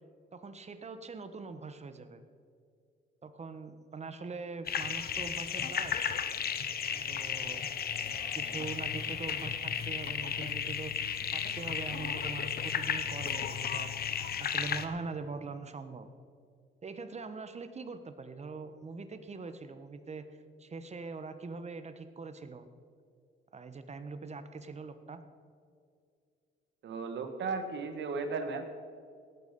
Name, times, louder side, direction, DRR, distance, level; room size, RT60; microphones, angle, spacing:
voice 1, 0.3-2.2 3.2-6.1 7.1-7.6 8.3-13.9 14.4-16.1 16.8-20.3 20.6-22.7 23.5-25.2, right 4 dB, 35° right, 10 dB, 1.2 m, -42 dB
sound 1, 4.7-14.9, left 8 dB, 50° left, 1.0 m, -34 dB
voice 2, 26.8-28.7, right 4 dB, 65° right, 6 dB, 1.9 m, -35 dB
18.5 x 8.4 x 5.3 m, 2.3 s
cardioid pair, 90°, 20 cm